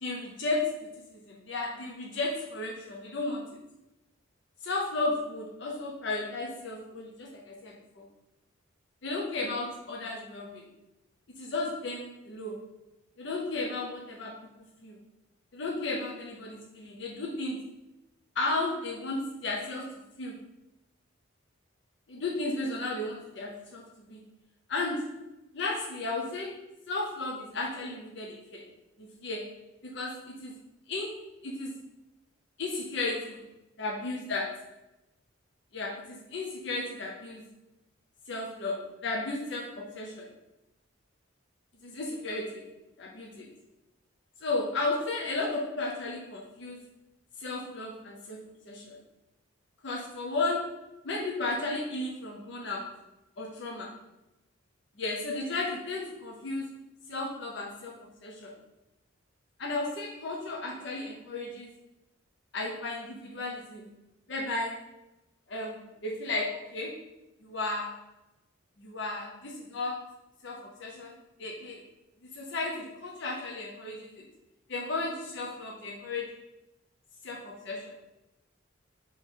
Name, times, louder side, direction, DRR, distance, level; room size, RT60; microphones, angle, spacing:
voice 1, 0.0-3.6 4.6-8.1 9.0-10.7 11.3-12.6 13.2-15.0 15.5-17.6 18.3-20.4 22.1-24.2 24.7-25.2 25.5-28.7 29.0-29.5 29.8-30.5 30.9-31.7 32.6-33.4 33.8-34.7 35.7-37.5 38.3-40.3 41.8-42.7 43.0-43.5 44.4-46.8 47.4-48.4 48.7-49.0 49.8-53.0 53.4-53.9 55.0-56.7 57.1-58.6 59.6-61.7 62.5-63.9 64.3-64.9 65.5-67.0 67.4-68.0 68.8-70.1 70.4-71.8 72.2-74.2 74.7-76.4 77.2-77.9, left 2 dB, 55° left, -2 dB, 0.6 m, -34 dB
3.7 x 3.0 x 4.5 m, 0.93 s
head